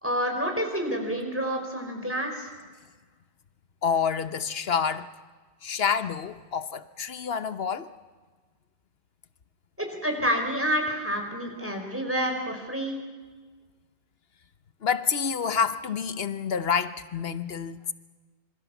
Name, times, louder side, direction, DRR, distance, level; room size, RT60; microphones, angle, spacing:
voice 1, 0.0-2.5 9.8-13.0, equal, 10° right, 5.0 m, -28 dB
voice 2, 3.8-5.1 5.6-7.9 14.8-17.8, left 6 dB, 70° left, 1.2 m, -28 dB
26.5 x 25.0 x 7.1 m
omnidirectional pair, 1.1 m